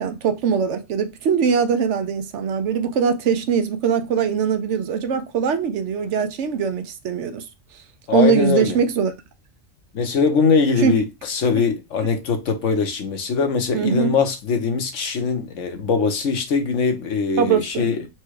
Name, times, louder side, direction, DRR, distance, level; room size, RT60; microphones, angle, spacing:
voice 1, 0.0-7.4 8.1-9.1 10.8-10.9 13.7-14.2 17.4-18.1, right 6 dB, 65° right, 0.8 m, -21 dB
voice 2, 8.1-8.8 9.9-18.0, left 5 dB, 70° left, 1.2 m, -21 dB
4.5 x 2.3 x 4.7 m
omnidirectional pair, 1.4 m